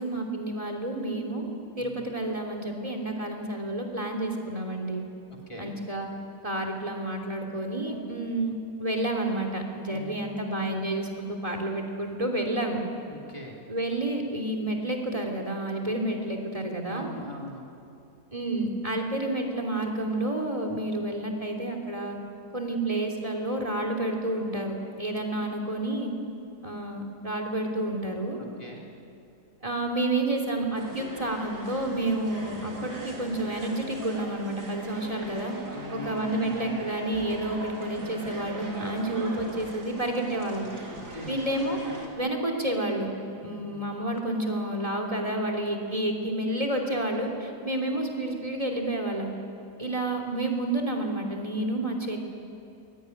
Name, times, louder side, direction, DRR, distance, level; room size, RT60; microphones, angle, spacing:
voice 1, 0.0-1.5 1.8-5.1 5.6-6.1 6.4-8.5 8.8-12.8 13.7-17.1 18.3-22.2 22.5-26.1 26.6-28.4 29.6-35.5 35.9-40.7 41.3-41.8 42.1-43.1 43.4-49.3 49.8-52.2, right 1 dB, 20° right, 3 dB, 3.2 m, -30 dB
voice 2, 1.8-2.1 5.5-5.8 9.9-10.3 13.1-13.6 15.8-16.0 16.9-17.7 28.4-28.9 35.7-36.8 41.1-41.4 43.4-43.8, left 1 dB, 15° left, -2 dB, 3.7 m, -42 dB
sound 1, 30.7-42.1, right 2 dB, 70° right, 4.1 m, -41 dB
23.0 x 21.5 x 9.9 m, 2.7 s
omnidirectional pair, 1.8 m